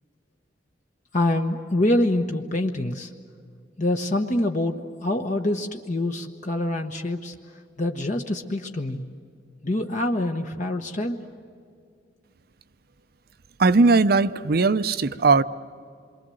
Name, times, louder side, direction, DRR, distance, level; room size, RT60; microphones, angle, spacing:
voice 1, 1.1-3.1 3.8-7.3 7.8-9.0 9.6-11.2, left 1 dB, 45° left, 3 dB, 1.2 m, -25 dB
voice 2, 13.6-15.4, right 3 dB, 60° right, 14 dB, 0.7 m, -18 dB
27.5 x 23.5 x 7.8 m, 2.2 s
head